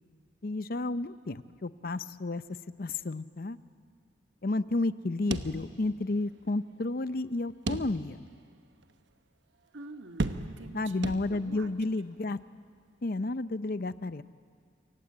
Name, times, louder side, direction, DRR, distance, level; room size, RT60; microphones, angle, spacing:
voice 1, 0.4-2.4 2.8-3.6 4.4-8.2 10.7-12.4 13.0-14.2, left 2 dB, 50° left, 15 dB, 0.6 m, -31 dB
sound 1, 5.3-6.2 6.5-6.6 7.7-8.3 8.8-8.9 10.2-10.8 11.0-11.7, right 2 dB, 70° right, 1.1 m, -34 dB
voice 2, 9.7-12.0, right 2 dB, 90° right, 6 dB, 1.7 m, -47 dB
27.5 x 23.5 x 8.7 m, 2.1 s
head